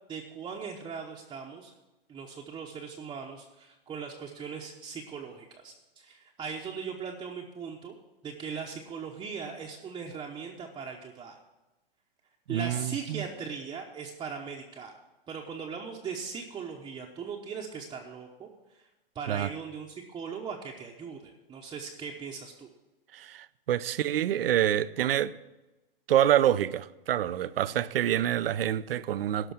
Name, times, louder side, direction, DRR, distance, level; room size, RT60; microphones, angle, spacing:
voice 1, 0.1-1.7 2.1-7.9 8.2-11.4 12.5-14.9 15.3-18.9 19.1-22.7, right 6 dB, 15° right, 0.9 m, -39 dB
voice 2, 12.5-13.2 19.3-19.5 23.1-25.3 26.1-29.5, right 11 dB, 75° right, 0.6 m, -27 dB
12.5 x 5.4 x 8.7 m
hypercardioid pair, 125°, 30 cm